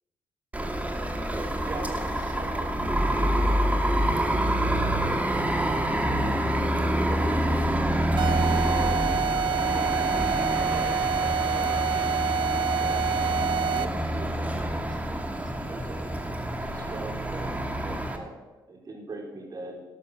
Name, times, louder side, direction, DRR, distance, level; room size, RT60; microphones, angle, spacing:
sound 1, 0.5-18.2, right 1 dB, 15° right, 2.5 m, -27 dB
voice 1, 1.6-4.1 4.5-5.8 6.0-6.3 7.1-11.0 11.4-12.0 12.7-13.1 13.5-16.1 16.5-19.8, right 2 dB, 45° right, 1 dB, 4.6 m, -43 dB
sound 2, 8.2-14.1, right 7 dB, 60° right, 0.7 m, -27 dB
13.0 x 12.0 x 6.6 m, 1.1 s
supercardioid pair, 70°, 9 cm